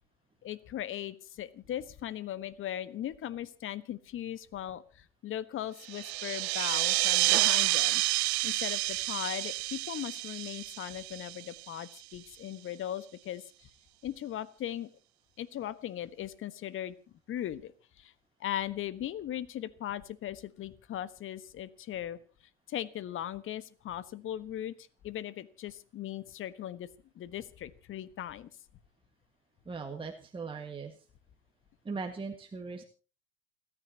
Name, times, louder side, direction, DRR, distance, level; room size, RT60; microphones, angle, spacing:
voice 1, 0.4-13.7 14.0-14.9 15.4-16.9 17.3-17.7 18.0-18.1 18.4-22.2 22.7-24.7 25.0-26.9 27.1-28.5, left 11 dB, 35° left, 15 dB, 1.4 m, -38 dB
sound 1, 5.8-12.0, right 21 dB, 65° right, 0.6 m, -29 dB
voice 2, 29.7-31.0 31.8-32.8, right 4 dB, 15° right, 3 dB, 1.8 m, -39 dB
29.5 x 10.0 x 2.9 m, 0.37 s
hypercardioid pair, 85°, 34 cm